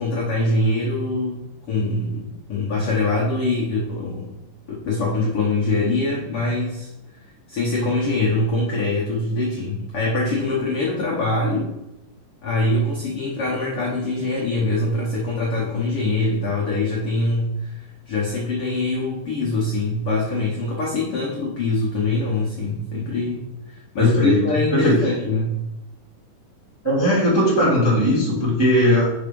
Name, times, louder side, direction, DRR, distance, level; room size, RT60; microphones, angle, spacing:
voice 1, 0.0-4.3 4.7-6.9 7.5-11.7 12.4-25.6, left 2 dB, 85° left, -4 dB, 1.2 m, -23 dB
voice 2, 24.0-24.4 24.7-25.0 26.8-29.1, left 1 dB, 10° right, -5 dB, 1.2 m, -18 dB
5.7 x 4.8 x 5.3 m, 0.93 s
omnidirectional pair, 4.4 m